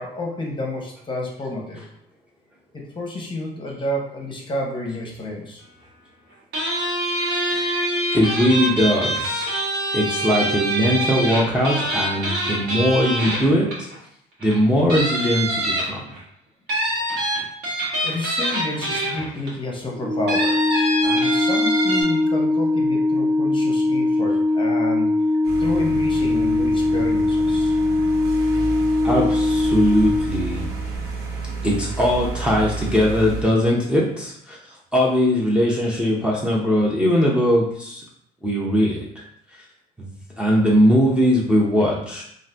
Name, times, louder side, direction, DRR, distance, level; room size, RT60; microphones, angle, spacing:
voice 1, 0.0-1.8 2.7-5.6 18.0-20.7 21.0-25.1 25.6-27.8, left 1 dB, 30° left, -1 dB, 0.7 m, -30 dB
sound 1, 6.5-13.9 14.4-14.5 14.9-16.2 16.7-19.5 20.3-22.0, right 1 dB, 90° right, 1.2 m, -24 dB
voice 2, 7.5-7.9 8.1-9.5 9.9-13.9 14.4-16.0 29.0-30.7 31.6-34.6 34.9-38.0 38.4-39.0 40.0-40.1 40.4-42.2, equal, 5° right, -5 dB, 0.6 m, -20 dB
Organ, 20.0-30.8, left 2 dB, 45° right, 1.4 m, -21 dB
sound 2, 25.4-33.4, right 3 dB, 75° right, 0.7 m, -31 dB
2.5 x 2.5 x 3.3 m, 0.70 s
cardioid pair, 110°, 17 cm